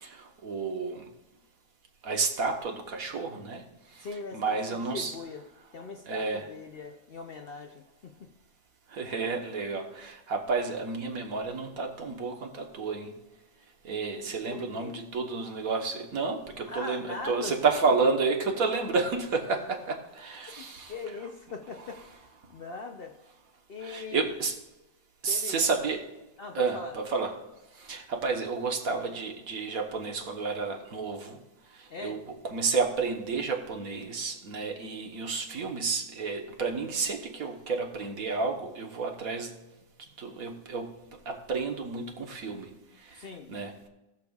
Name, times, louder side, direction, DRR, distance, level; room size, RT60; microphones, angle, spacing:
voice 1, 0.0-1.0 2.0-3.6 4.3-5.1 6.1-6.4 8.9-13.1 13.8-20.9 23.8-24.5 25.2-26.1 26.5-27.3 27.8-31.4 32.0-32.2 32.4-39.5 40.2-40.9 41.3-42.7 43.5-43.8, right 4 dB, 70° right, 3 dB, 1.6 m, -30 dB
voice 2, 4.0-5.4 5.7-8.3 14.5-15.0 16.7-17.7 20.6-22.2 22.5-23.1 23.7-24.3 25.3-25.6 26.4-27.0 31.9-32.2 43.1-43.5, left 3 dB, 55° left, 3 dB, 0.7 m, -40 dB
19.5 x 6.8 x 2.4 m, 1.0 s
omnidirectional pair, 1.6 m